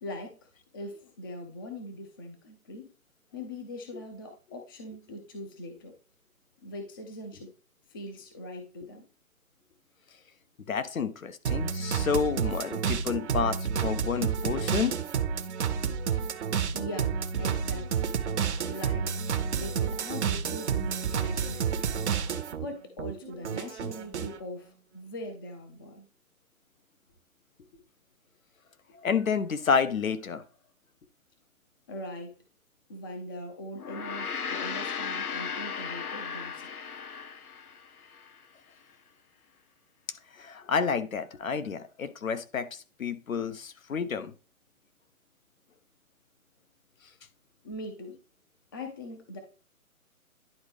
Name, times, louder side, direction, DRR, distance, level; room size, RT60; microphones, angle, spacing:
voice 1, 0.0-2.9 3.3-5.9 6.6-7.5 7.9-9.1 16.7-18.2 18.6-19.1 19.5-21.9 22.6-26.1 31.9-32.4 32.9-36.8 47.6-48.2 48.7-49.4, left 1 dB, 15° left, 5 dB, 0.5 m, -41 dB
voice 2, 10.7-15.0 28.9-30.4 40.3-44.3, left 6 dB, 70° left, 11 dB, 1.1 m, -30 dB
sound 1, 11.5-22.7 23.0-24.4, right 7 dB, 50° right, 0.8 m, -30 dB
Gong, 33.7-38.4, left 6 dB, 90° left, 0.9 m, -36 dB
10.5 x 3.9 x 3.4 m, 0.34 s
figure-of-eight pair, 140°, 43 cm